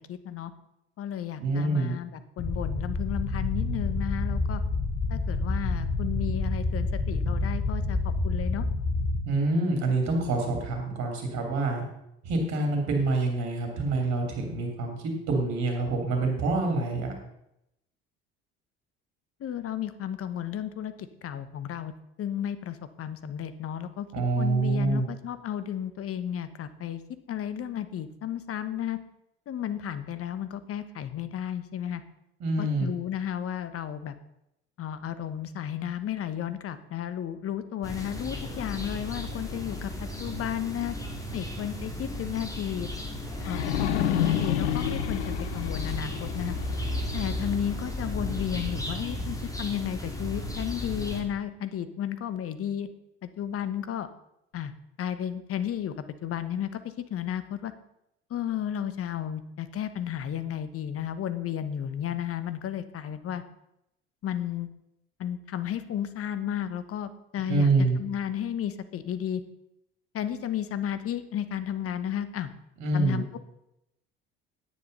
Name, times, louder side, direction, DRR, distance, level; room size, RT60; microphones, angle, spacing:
voice 1, 0.1-0.5 1.0-4.6 5.1-8.7 19.4-20.9 21.2-21.9 22.2-24.1 24.4-27.0 27.3-29.0 29.5-32.0 32.6-34.1 34.8-41.0 41.3-42.9 43.4-45.2 45.5-46.5 47.1-52.9 53.2-54.1 54.5-55.9 56.2-57.7 58.3-63.4 64.2-64.7 65.2-67.7 68.0-69.4 70.1-72.5 72.9-73.2, left 10 dB, 45° left, 12 dB, 1.1 m, -33 dB
voice 2, 1.4-1.9 9.3-11.8 12.2-14.9 15.3-17.1 24.1-25.1 32.4-32.9 67.5-68.0 72.8-73.2, right 3 dB, 60° right, 3 dB, 3.1 m, -26 dB
sound 1, 2.4-9.2, left 3 dB, 25° left, 3.2 m, -28 dB
sound 2, 37.8-51.2, equal, 10° left, 3.0 m, -35 dB
sound 3, 38.4-41.4 41.8-41.9 43.3-48.4, left 11 dB, 85° left, 0.9 m, -32 dB
9.8 x 9.5 x 5.4 m, 0.82 s
hypercardioid pair, 65°, 31 cm